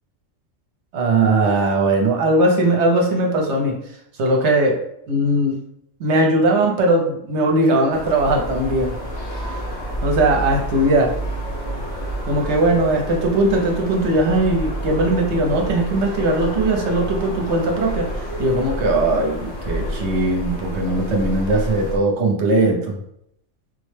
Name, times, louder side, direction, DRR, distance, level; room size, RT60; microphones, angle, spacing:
voice 1, 0.9-3.8 4.2-4.8 5.1-5.6 6.0-9.0 10.0-11.1 12.3-18.1 18.4-23.0, right 2 dB, 65° right, 1 dB, 0.9 m, -19 dB
sound 1, 7.9-22.0, equal, 75° left, 1.2 m, -29 dB
3.8 x 2.1 x 3.2 m, 0.76 s
omnidirectional pair, 1.3 m